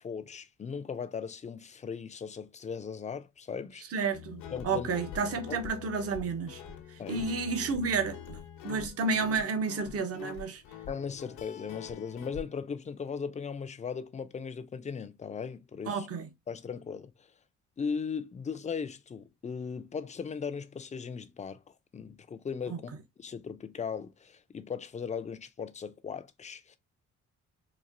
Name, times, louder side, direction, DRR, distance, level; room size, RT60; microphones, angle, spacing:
voice 1, 0.0-3.9 4.5-4.9 5.5-5.6 7.0-7.3 10.9-16.1 16.5-17.3 17.8-21.6 21.9-22.9 23.2-26.8, left 6 dB, 25° left, 0.5 m, -38 dB
voice 2, 3.9-6.6 6.9-8.4 8.6-10.6 15.9-16.3 22.7-22.8, right 4 dB, 50° right, 0.9 m, -31 dB
Guitar, 4.1-12.4, left 8 dB, 75° left, 0.9 m, -45 dB
4.2 x 2.5 x 2.5 m
cardioid pair, 90°, 30 cm